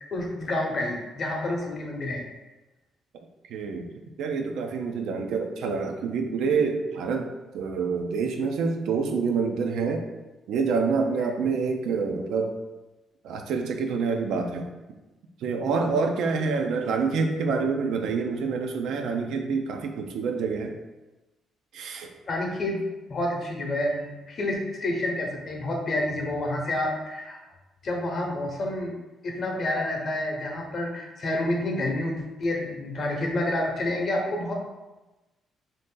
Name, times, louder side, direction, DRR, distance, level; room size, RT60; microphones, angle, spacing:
voice 1, 0.1-2.2 22.3-22.8 23.1-27.4 27.8-28.9 29.2-34.5, left 1 dB, 50° left, 1 dB, 0.7 m, -29 dB
voice 2, 3.5-3.9 4.2-10.0 10.5-12.5 13.2-14.7 15.4-20.8 21.7-22.1, right 5 dB, 80° right, 4 dB, 0.3 m, -27 dB
2.6 x 2.5 x 3.7 m, 1.1 s
cardioid pair, 90°, 0 cm